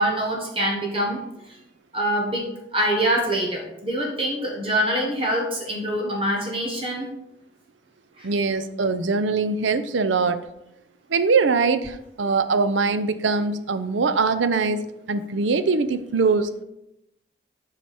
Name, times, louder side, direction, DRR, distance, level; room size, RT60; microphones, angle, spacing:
voice 1, 0.0-1.6 1.9-2.5 2.7-7.1 8.2-8.3, right 1 dB, 30° right, 0 dB, 1.2 m, -25 dB
voice 2, 8.2-10.4 11.1-14.8 15.1-16.6, right 4 dB, 85° right, 11 dB, 0.6 m, -22 dB
7.8 x 4.9 x 4.2 m, 0.84 s
head